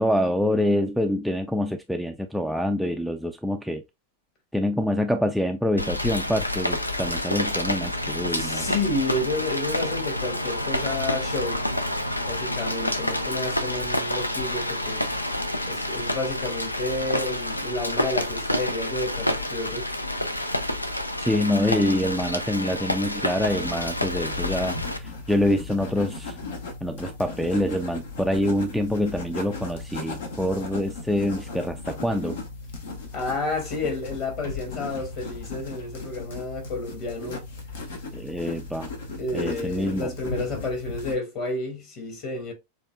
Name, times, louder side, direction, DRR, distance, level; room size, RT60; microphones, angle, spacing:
voice 1, 0.0-3.8 4.5-8.7 21.2-26.4 26.8-32.4 38.1-38.9 39.3-40.1, left 1 dB, ahead, 0.4 m, -26 dB
Rain, 5.8-25.0, left 1 dB, 90° left, 0.4 m, -28 dB
voice 2, 8.3-11.6 12.3-15.0 15.7-19.9 33.1-37.4 39.2-42.5, left 2 dB, 40° left, 2.0 m, -30 dB
sound 1, 23.4-41.2, left 3 dB, 65° left, 1.0 m, -37 dB
6.5 x 2.6 x 2.2 m
figure-of-eight pair, 90°, 0 cm